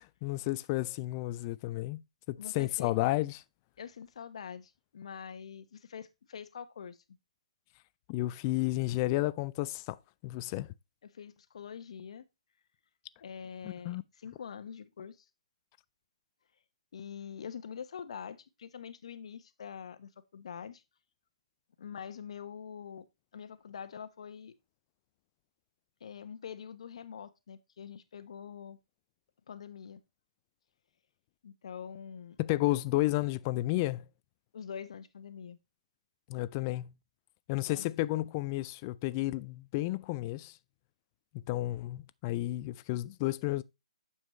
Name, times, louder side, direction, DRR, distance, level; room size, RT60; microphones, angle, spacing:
voice 1, 0.0-2.0 2.3-3.4 8.1-10.0 10.2-10.7 13.6-14.0 32.4-34.1 36.3-36.9 37.5-40.6 41.3-43.6, left 18 dB, 25° left, 0.4 m, -32 dB
voice 2, 2.4-2.9 3.8-7.0 11.0-12.2 13.2-15.3 16.9-20.8 21.8-23.0 23.3-24.5 26.0-28.8 29.5-30.0 31.4-32.4 34.5-35.6 37.7-37.8, left 7 dB, 55° left, 1.0 m, -45 dB
9.2 x 7.1 x 3.1 m
figure-of-eight pair, 140°, 4 cm